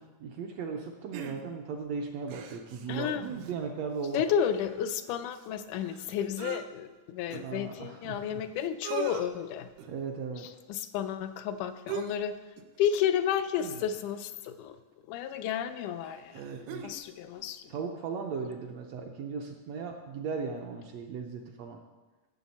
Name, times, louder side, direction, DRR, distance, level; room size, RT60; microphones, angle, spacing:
voice 1, 0.0-4.2 7.3-8.2 9.9-10.5 16.3-16.9 17.7-21.8, right 5 dB, 75° right, 2 dB, 1.6 m, -37 dB
sound 1, 1.1-1.8 2.3-3.7 4.1-4.2 4.4-6.6 7.3-7.4 8.3-8.4 8.6-9.2 9.8-10.1 11.9-12.3 12.6-12.8 13.6-14.2 15.3-15.4 16.0-17.0 17.4-17.5, right 6 dB, 90° right, 2.4 m, -41 dB
voice 2, 2.9-3.2 4.1-9.7 10.4-12.4 12.8-14.8 15.1-16.4 16.8-17.7, left 9 dB, 80° left, 9 dB, 2.0 m, -32 dB
15.0 x 7.2 x 4.2 m, 1.2 s
omnidirectional pair, 3.7 m